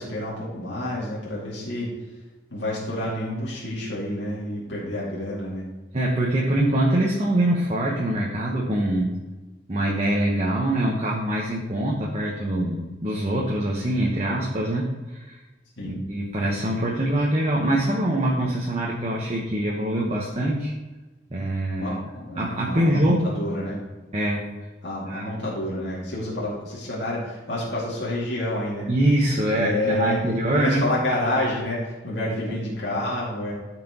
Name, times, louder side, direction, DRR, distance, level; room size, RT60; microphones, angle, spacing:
voice 1, 0.0-1.9 2.5-5.6 15.8-16.0 21.8-23.8 24.8-28.9 29.5-33.5, left 1 dB, 80° left, -6 dB, 2.3 m, -29 dB
voice 2, 5.9-9.2 9.7-15.4 15.8-20.7 21.3-22.0 22.4-23.3 24.1-24.5 25.1-25.4 28.9-30.9 32.5-32.6, right 1 dB, 35° right, -3 dB, 1.2 m, -24 dB
13.0 x 6.0 x 3.0 m, 1.2 s
head